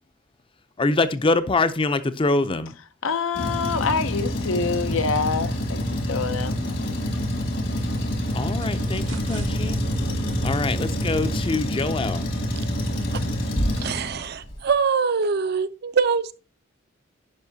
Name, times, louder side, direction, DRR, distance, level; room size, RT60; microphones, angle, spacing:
voice 1, 0.8-2.7 8.3-9.8 10.4-12.3, left 3 dB, 25° left, 0.5 m, -24 dB
voice 2, 3.0-6.6, left 5 dB, 90° left, 0.7 m, -26 dB
Truck, 3.3-14.5, equal, 70° left, 1.8 m, -26 dB
sound 1, 7.5-13.1, right 1 dB, 75° right, 1.1 m, -43 dB
voice 3, 13.7-16.3, right 5 dB, 55° right, 0.5 m, -24 dB
10.5 x 5.3 x 2.7 m
head